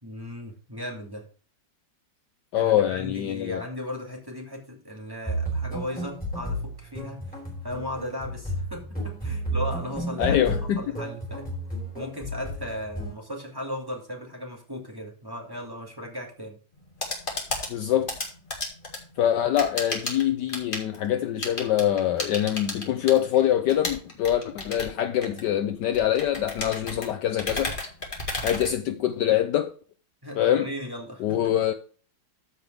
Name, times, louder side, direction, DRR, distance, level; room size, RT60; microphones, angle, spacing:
voice 1, 0.0-1.2 2.5-10.4 10.8-11.5 11.9-16.6 30.2-31.7, left 1 dB, 10° right, 2.5 m, -36 dB
voice 2, 2.5-3.6 10.2-10.8 17.7-18.1 19.2-27.8 28.4-29.7 30.4-30.7 31.2-31.7, left 11 dB, 70° left, 1.1 m, -24 dB
sound 1, 5.3-13.1, right 1 dB, 5° left, 3.5 m, -32 dB
sound 2, 16.7-29.4, left 2 dB, 25° left, 2.2 m, -35 dB
14.0 x 5.3 x 3.4 m
omnidirectional pair, 2.1 m